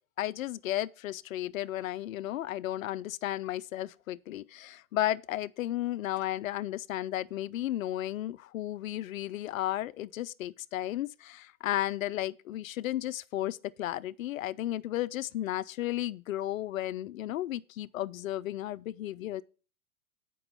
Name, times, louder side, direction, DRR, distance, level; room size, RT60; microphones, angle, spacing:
voice 1, 0.2-19.4, left 14 dB, 70° left, 0.5 m, -34 dB
7.9 x 5.3 x 5.5 m
hypercardioid pair, 105°, 41 cm